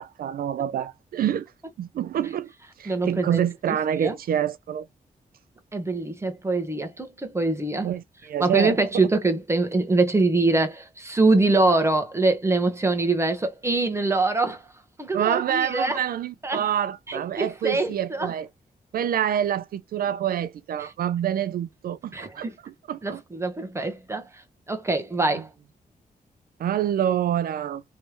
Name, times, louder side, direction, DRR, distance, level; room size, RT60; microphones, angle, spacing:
voice 1, 0.0-1.5 1.8-2.5 2.8-4.9 7.8-8.8 15.1-18.5 18.9-23.2 26.6-27.8, right 10 dB, 75° right, 0.4 m, -27 dB
voice 2, 2.9-3.4 4.0-4.2 5.7-7.9 8.4-14.6 15.0-16.0 16.4-16.6 17.1-18.3 22.1-22.5 23.0-24.3 24.7-25.5, right 2 dB, 15° right, 1.1 m, -24 dB
3.2 x 3.2 x 2.9 m
wide cardioid pair, 110°, 15 cm